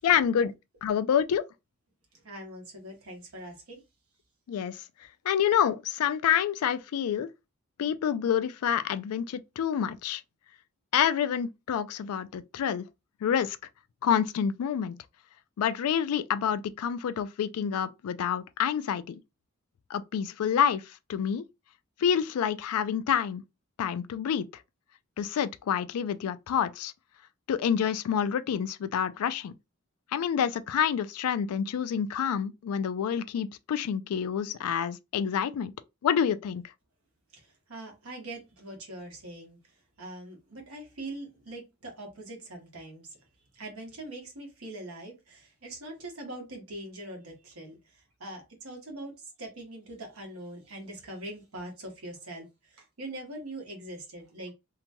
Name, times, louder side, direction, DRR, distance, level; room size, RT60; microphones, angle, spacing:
voice 1, 0.0-0.5 0.8-1.4 4.5-4.8 5.3-7.3 7.8-10.2 10.9-12.8 13.2-13.6 14.0-15.0 15.6-19.2 19.9-20.8 21.1-21.5 22.0-23.4 23.8-24.5 25.2-26.9 27.5-29.5 30.1-35.7 36.0-36.6, left 8 dB, 90° left, 0.3 m, -27 dB
voice 2, 2.1-3.8 37.3-39.6 40.0-43.1 43.5-54.5, right 1 dB, 80° right, 1.1 m, -42 dB
2.8 x 2.2 x 2.8 m
head